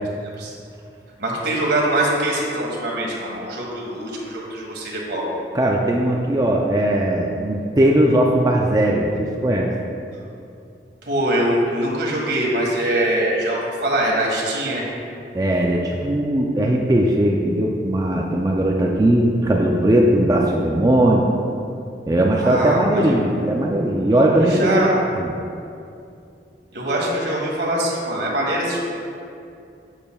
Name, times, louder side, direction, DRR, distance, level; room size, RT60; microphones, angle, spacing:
voice 1, 1.2-5.2 11.0-14.9 22.4-23.1 24.1-24.9 26.7-28.8, right 1 dB, 75° right, -3 dB, 1.7 m, -23 dB
voice 2, 5.5-9.7 15.3-21.3 22.0-25.3, right 1 dB, 20° right, -1 dB, 0.4 m, -19 dB
8.6 x 8.1 x 2.3 m, 2.6 s
head